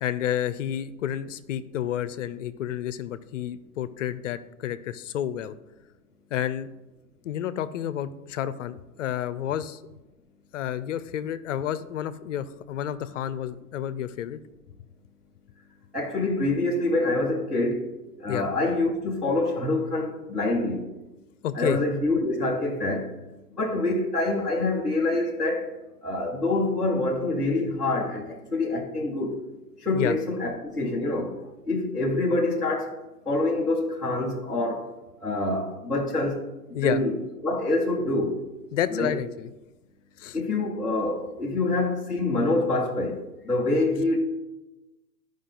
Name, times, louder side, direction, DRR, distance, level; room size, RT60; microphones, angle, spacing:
voice 1, 0.0-5.5 6.3-6.7 7.2-9.8 10.5-14.4 18.3-18.5 21.4-21.8 29.9-30.1 36.7-37.0 38.7-39.5 40.2-40.4, left 10 dB, 55° left, 0.6 m, -30 dB
voice 2, 15.9-17.8 18.2-20.9 21.5-23.1 23.6-25.7 26.0-29.4 29.8-31.3 31.7-32.9 33.3-34.9 35.2-36.4 36.7-37.1 37.4-38.3 38.9-39.1 40.3-43.2 43.4-44.2, left 2 dB, ahead, 0.3 m, -26 dB
12.5 x 5.2 x 3.9 m
hypercardioid pair, 115°, 45 cm